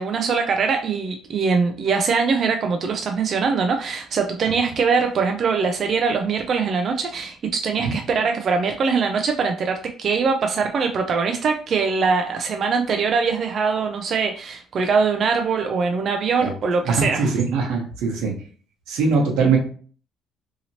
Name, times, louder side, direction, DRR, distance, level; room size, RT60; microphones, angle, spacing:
voice 1, 0.0-17.3, right 5 dB, 40° right, 4 dB, 0.3 m, -22 dB
voice 2, 16.8-18.3 18.9-19.6, right 4 dB, 80° right, 1 dB, 0.9 m, -21 dB
2.8 x 2.7 x 2.7 m, 0.43 s
cardioid pair, 145°, 0 cm